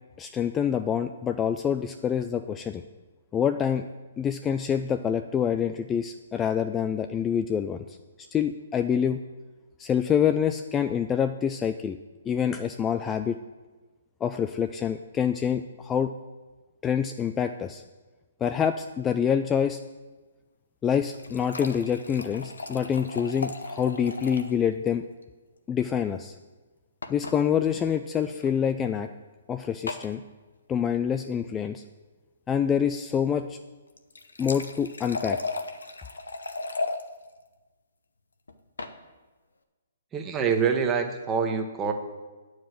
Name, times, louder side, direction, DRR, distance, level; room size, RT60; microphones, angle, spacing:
voice 1, 0.2-2.8 3.3-3.9 4.2-8.0 8.3-9.2 9.8-12.0 12.3-13.4 14.2-16.1 16.8-17.8 18.4-19.8 20.8-25.0 25.7-26.3 27.1-29.1 29.5-30.2 30.7-31.8 32.5-33.6 34.4-35.4, left 8 dB, 15° left, 7 dB, 0.3 m, -26 dB
sound 1, 20.8-24.6 24.9-25.0 25.2-25.3 27.0-27.4 28.3-28.5 29.9-30.1 33.9-37.0 38.5-39.0, left 3 dB, 90° left, 0.8 m, -35 dB
voice 2, 40.1-41.9, right 6 dB, 15° right, 5 dB, 1.0 m, -25 dB
9.0 x 4.8 x 7.5 m, 1.3 s
hypercardioid pair, 140°, 0 cm